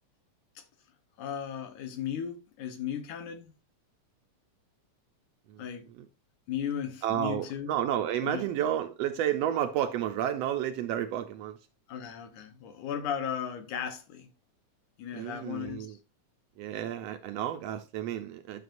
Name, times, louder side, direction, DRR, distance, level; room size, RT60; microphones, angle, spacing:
voice 1, 1.2-3.5 5.6-5.9 6.5-7.8 8.2-8.4 11.9-14.3 15.0-16.0, left 8 dB, 85° left, 2.7 m, -36 dB
voice 2, 7.0-11.6 15.1-15.9 16.6-18.6, right 11 dB, 75° right, 1.5 m, -31 dB
11.0 x 6.7 x 2.5 m
omnidirectional pair, 3.4 m